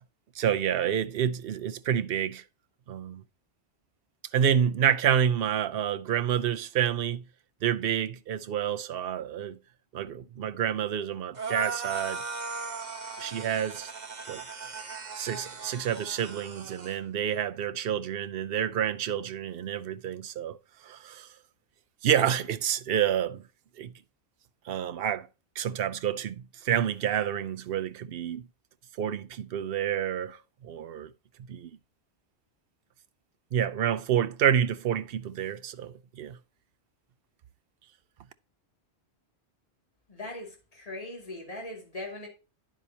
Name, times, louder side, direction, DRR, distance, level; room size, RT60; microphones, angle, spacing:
voice 1, 0.4-2.4 2.9-3.2 4.3-7.2 7.6-9.6 9.9-12.2 13.2-13.9 14.3-14.4 15.2-20.6 20.8-21.3 22.0-23.4 23.8-23.9 24.7-25.3 25.6-28.5 29.0-31.1 31.5-31.7 33.5-36.4, right 9 dB, 60° right, 0.8 m, -28 dB
sound 1, 11.3-17.0, right 4 dB, 40° right, 1.2 m, -37 dB
voice 2, 40.1-42.3, left 2 dB, 35° left, 2.7 m, -40 dB
10.0 x 7.4 x 2.8 m
omnidirectional pair, 1.1 m